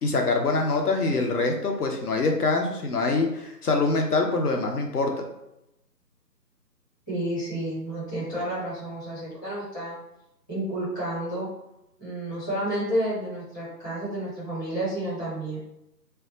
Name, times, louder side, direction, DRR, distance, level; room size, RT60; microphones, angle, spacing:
voice 1, 0.0-5.1, left 3 dB, 65° left, 2 dB, 0.7 m, -24 dB
voice 2, 7.1-10.0 10.5-11.5 12.0-15.6, right 1 dB, 10° left, -13 dB, 0.9 m, -30 dB
2.3 x 2.2 x 3.7 m, 0.86 s
figure-of-eight pair, 155°, 49 cm